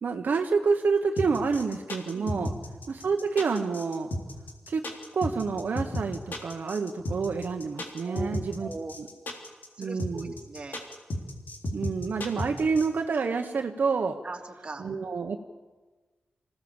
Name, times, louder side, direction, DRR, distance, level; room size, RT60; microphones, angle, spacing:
voice 1, 0.0-2.5 2.9-4.1 4.7-4.8 5.1-8.7 9.0-9.1 9.8-10.3 11.7-14.2 14.8-15.4, right 5 dB, 65° right, 4 dB, 1.1 m, -28 dB
sound 1, 1.2-12.9, left 1 dB, 70° left, 3.4 m, -33 dB
voice 2, 2.1-2.5 8.0-8.3 8.6-8.9 9.7-10.8 14.2-14.8, right 2 dB, 30° right, 1 dB, 2.3 m, -39 dB
26.0 x 16.5 x 7.2 m, 1.3 s
wide cardioid pair, 155°, 3 cm